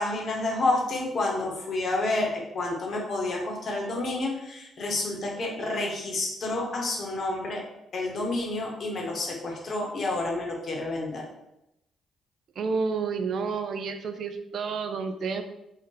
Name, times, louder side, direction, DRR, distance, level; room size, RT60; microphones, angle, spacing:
voice 1, 0.0-7.6 7.9-11.3, left 2 dB, 55° left, -1 dB, 0.9 m, -29 dB
voice 2, 12.6-15.4, right 5 dB, 65° right, 8 dB, 0.3 m, -30 dB
2.6 x 2.1 x 3.8 m, 0.88 s
supercardioid pair, 70°, 0 cm